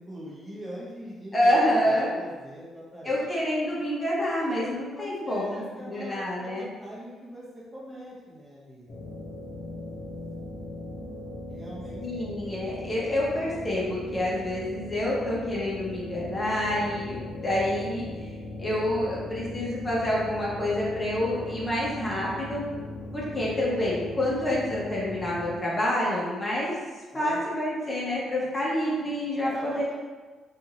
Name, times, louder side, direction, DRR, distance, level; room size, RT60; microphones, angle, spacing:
voice 1, 0.0-3.2 4.9-8.9 11.5-12.2 23.0-23.4 27.1-27.4 29.4-30.0, equal, 15° right, -7 dB, 0.9 m, -42 dB
voice 2, 1.3-2.2 3.0-6.7 12.0-17.2 17.4-22.6 23.1-26.7 27.1-29.7, left 1 dB, 25° left, -6 dB, 0.8 m, -27 dB
sound 1, 8.9-25.6, left 2 dB, 65° left, 0.7 m, -39 dB
2.7 x 2.5 x 2.8 m, 1.4 s
cardioid pair, 90°, 0 cm